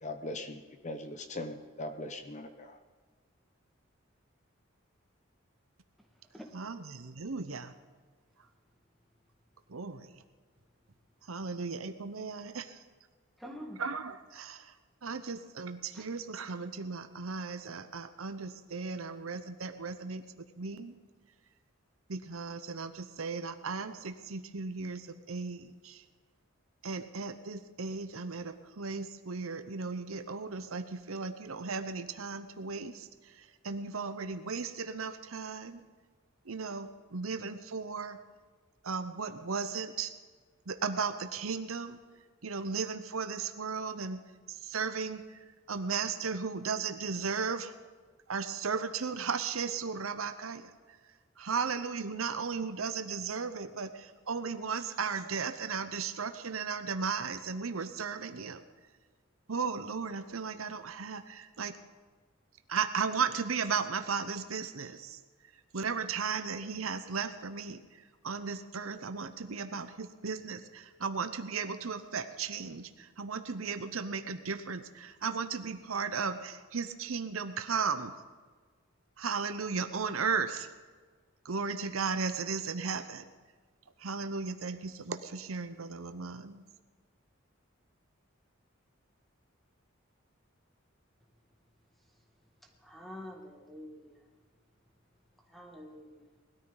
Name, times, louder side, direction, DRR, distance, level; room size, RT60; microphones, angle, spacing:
voice 1, 0.0-2.8, left 2 dB, 35° left, 0.9 m, -40 dB
voice 2, 6.5-7.7 9.7-10.2 11.2-12.8 13.8-14.7 15.0-20.9 22.1-26.0 26.8-35.8 36.4-38.2 38.8-40.1 40.7-42.0 42.4-44.2 44.5-45.4 45.7-47.7 48.3-51.0 51.4-58.6 59.5-61.7 62.7-65.2 65.7-78.1 79.2-80.7 81.4-83.3 84.0-86.6, right 5 dB, 90° right, 0.9 m, -36 dB
voice 3, 13.4-13.8 15.9-16.0 92.8-94.2 95.5-96.2, equal, ahead, 1.8 m, -46 dB
20.0 x 13.5 x 4.0 m
head